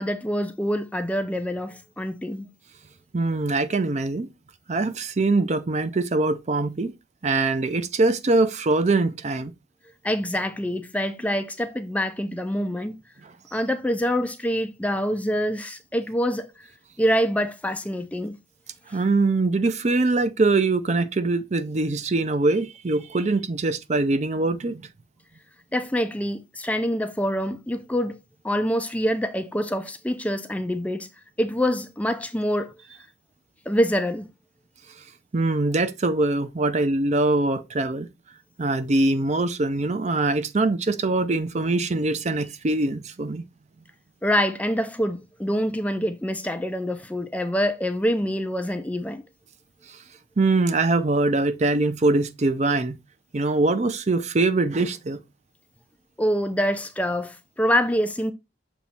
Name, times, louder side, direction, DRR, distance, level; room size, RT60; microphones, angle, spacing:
voice 1, 0.0-2.5 10.0-12.9 13.5-16.5 17.0-18.4 25.7-28.2 28.4-31.1 31.4-32.7 33.7-34.3 44.2-49.2 56.2-58.3, equal, 10° left, 0.5 m, -25 dB
voice 2, 3.1-4.3 4.7-6.9 7.2-9.5 18.9-24.8 35.3-38.1 38.6-43.4 50.4-53.0 53.3-55.2, right 2 dB, 40° right, 0.5 m, -23 dB
7.1 x 3.1 x 4.3 m
head